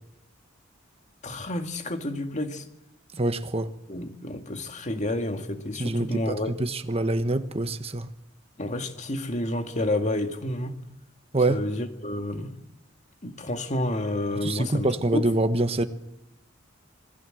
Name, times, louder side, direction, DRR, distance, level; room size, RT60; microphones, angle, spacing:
voice 1, 1.2-2.6 3.9-6.5 8.6-10.7 11.5-12.5 13.2-14.9 15.1-15.2, left 1 dB, 40° left, 2.2 m, -30 dB
voice 2, 3.1-3.7 5.8-8.1 11.3-11.6 14.4-15.8, right 2 dB, 30° right, 1.2 m, -25 dB
27.0 x 20.0 x 7.8 m
head